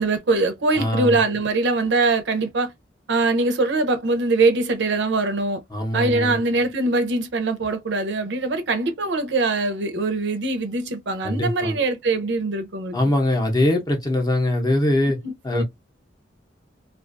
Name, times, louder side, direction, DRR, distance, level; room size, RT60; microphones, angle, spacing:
voice 1, 0.0-2.7 3.1-5.6 5.9-13.0 15.2-15.6, right 3 dB, 70° right, 0.5 m, -22 dB
voice 2, 0.8-1.2 5.7-6.4 11.2-11.8 12.9-15.2 15.4-15.6, left 1 dB, 20° left, 0.6 m, -22 dB
2.4 x 2.3 x 2.4 m
head